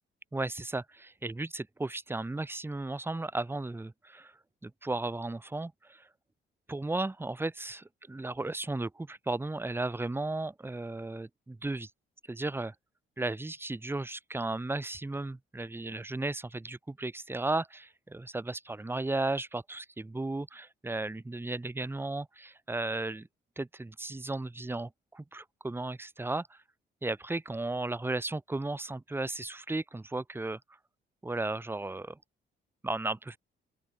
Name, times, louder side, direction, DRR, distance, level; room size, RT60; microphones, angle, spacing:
voice 1, 0.3-4.3 4.6-6.1 6.7-11.9 12.3-12.7 13.2-23.3 23.6-26.6 27.0-30.6 31.2-32.2 32.8-33.4, right 2 dB, 10° right, 1.0 m, -35 dB
open air
cardioid pair, 90°, 20 cm